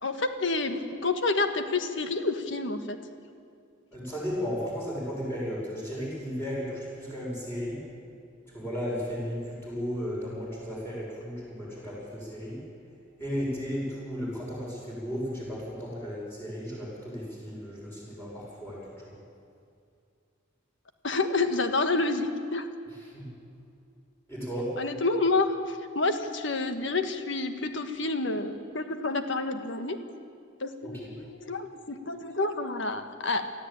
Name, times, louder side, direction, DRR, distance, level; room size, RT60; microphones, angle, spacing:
voice 1, 0.0-3.0 21.0-22.7 24.8-30.0 30.6-33.5, left 3 dB, 65° left, 7 dB, 1.5 m, -29 dB
voice 2, 3.9-7.8 8.5-12.6 13.2-19.2 23.1-23.3 24.3-24.8 30.8-31.1, equal, 10° left, -6 dB, 6.4 m, -35 dB
24.0 x 14.5 x 8.9 m, 2.4 s
head